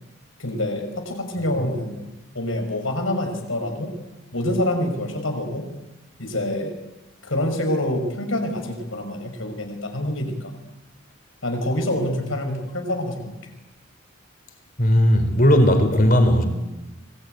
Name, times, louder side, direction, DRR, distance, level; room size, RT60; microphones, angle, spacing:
voice 1, 0.4-2.0 2.3-3.9 4.3-5.6 6.2-6.7 7.2-10.5 11.4-13.3, left 1 dB, 80° left, 5 dB, 5.9 m, -26 dB
voice 2, 14.8-16.5, equal, 45° left, 7 dB, 4.1 m, -16 dB
25.0 x 21.5 x 9.4 m, 1.0 s
head